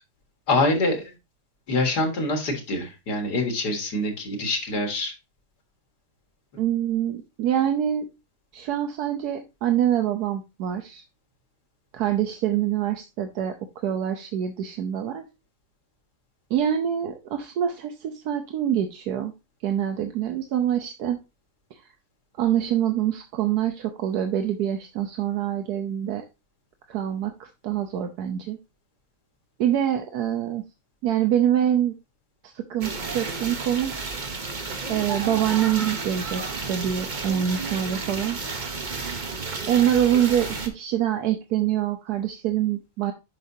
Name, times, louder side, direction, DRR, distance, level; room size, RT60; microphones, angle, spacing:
voice 1, 0.5-1.0 1.7-5.1, left 2 dB, 90° left, 3 dB, 2.3 m, -25 dB
voice 2, 6.6-8.1 8.5-11.0 11.9-15.2 16.5-19.3 19.6-21.2 21.7-21.8 22.4-26.2 26.9-28.6 29.6-30.6 31.0-31.9 32.4-33.9 34.9-38.4 39.7-43.1, right 10 dB, 80° right, 5 dB, 1.3 m, -25 dB
sound 1, 32.8-40.7, right 4 dB, 35° right, 0.9 m, -32 dB
7.6 x 5.8 x 2.7 m, 0.26 s
omnidirectional pair, 1.7 m